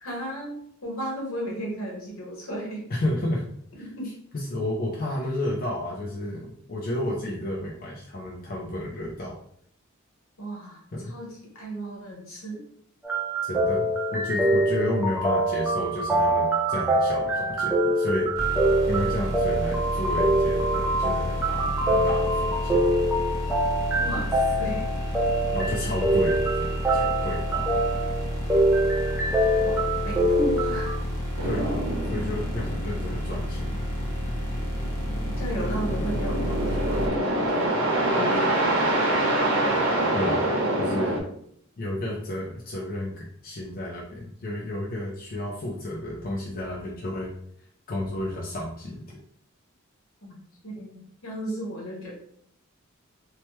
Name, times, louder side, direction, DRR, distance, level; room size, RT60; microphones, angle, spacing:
voice 1, 0.0-2.8 3.8-4.1 10.4-12.6 24.0-24.9 29.6-30.9 35.4-37.7 38.1-38.9 50.2-50.4 50.6-52.1, right 1 dB, 75° left, -2 dB, 1.1 m, -34 dB
voice 2, 2.9-3.4 3.8-3.9 4.3-9.4 10.9-11.1 13.4-18.5 18.9-22.9 25.5-27.8 31.4-33.7 40.1-40.5 40.8-41.2 41.8-47.3 47.9-49.2, left 1 dB, 45° left, -3 dB, 0.5 m, -31 dB
sound 1, 13.0-31.0, right 1 dB, 10° right, 0.5 m, -24 dB
sound 2, 18.3-37.1, equal, 15° left, 0.9 m, -30 dB
sound 3, 31.4-41.2, right 1 dB, 75° right, 0.8 m, -26 dB
3.1 x 2.1 x 3.0 m, 0.66 s
head